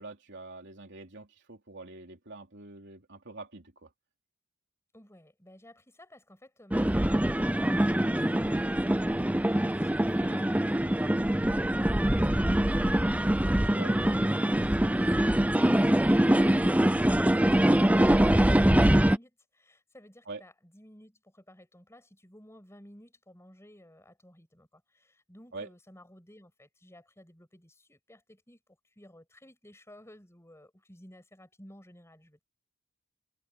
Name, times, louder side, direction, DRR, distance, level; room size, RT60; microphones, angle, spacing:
voice 1, 0.0-3.9 13.7-14.0 20.3-20.4 25.5-25.7, right 3 dB, 55° right, 3.5 m, -45 dB
voice 2, 4.9-7.6 7.9-13.1 13.3-28.6 28.8-32.4, left 1 dB, 10° left, 7.1 m, -54 dB
sound 1, 6.7-19.2, right 1 dB, 5° right, 0.5 m, -24 dB
head